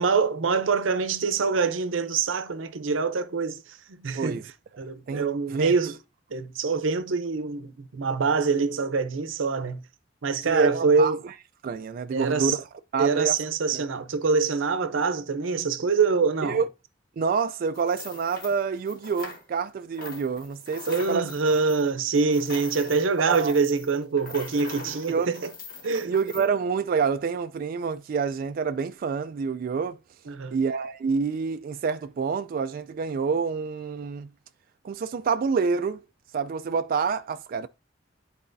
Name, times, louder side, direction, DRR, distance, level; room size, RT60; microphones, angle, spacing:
voice 1, 0.0-4.4 4.8-6.0 6.3-9.8 10.2-11.2 12.1-12.6 13.0-16.6 20.9-25.5 25.8-26.1 30.3-30.6, right 4 dB, 90° right, 0.6 m, -25 dB
voice 2, 10.4-11.1 11.6-12.6 12.9-13.4 13.7-13.8 16.5-16.7 17.2-21.2 23.3-23.6 25.1-25.3 26.1-30.0 30.5-34.3 34.8-36.0 36.3-37.7, right 5 dB, 50° right, 0.3 m, -27 dB
sound 1, 17.7-19.7 19.9-26.5, left 3 dB, 50° left, 1.4 m, -43 dB
11.0 x 4.1 x 2.6 m
head